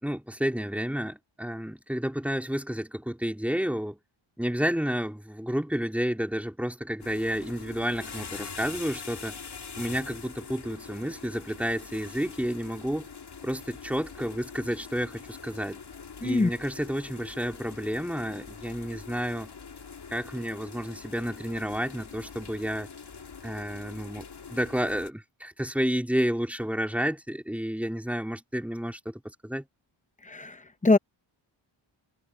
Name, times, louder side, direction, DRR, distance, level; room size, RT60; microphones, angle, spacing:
voice 1, 0.0-4.0 4.4-9.4 9.8-13.1 13.4-15.8 16.2-19.5 20.1-22.9 23.4-29.6, equal, 5° right, 3.9 m, -31 dB
sound 1, 7.0-25.1, left 5 dB, 50° left, 2.3 m, -44 dB
voice 2, 30.3-30.6 30.8-31.0, left 2 dB, 15° left, 0.8 m, -22 dB
wide cardioid pair, 100°, 50 cm